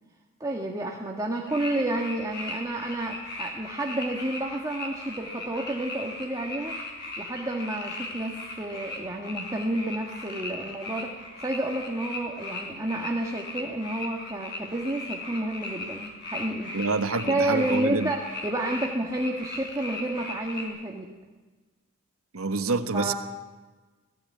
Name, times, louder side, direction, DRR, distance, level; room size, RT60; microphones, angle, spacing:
voice 1, 0.4-6.8 7.2-16.7 17.3-21.1 22.9-23.1, right 1 dB, 15° right, 0 dB, 1.6 m, -30 dB
sound 1, 1.5-20.7, left 2 dB, 50° left, 5.3 m, -38 dB
voice 2, 16.7-18.1 22.3-23.1, right 3 dB, 75° right, 9 dB, 1.3 m, -27 dB
18.5 x 15.5 x 9.5 m, 1.3 s
head